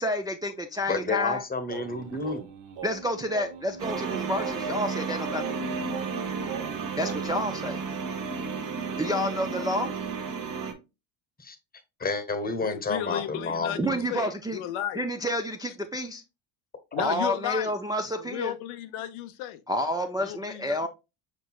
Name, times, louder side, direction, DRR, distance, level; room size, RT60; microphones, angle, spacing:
voice 1, 0.0-1.4 2.8-5.5 7.0-7.8 9.0-9.9 13.8-14.6 15.0-16.2 17.0-18.5 19.7-20.9, left 1 dB, 10° right, 0.4 m, -29 dB
voice 2, 0.9-2.5 11.4-11.6 12.0-14.1, left 3 dB, 20° left, 1.0 m, -30 dB
sound 1, 1.7-7.4, right 6 dB, 70° right, 1.3 m, -40 dB
sound 2, 3.8-10.7, right 5 dB, 40° right, 1.1 m, -32 dB
voice 3, 12.6-15.1 16.9-17.7 18.2-19.6 20.2-20.8, left 12 dB, 80° left, 0.7 m, -34 dB
4.9 x 4.5 x 2.3 m
supercardioid pair, 80°, 48 cm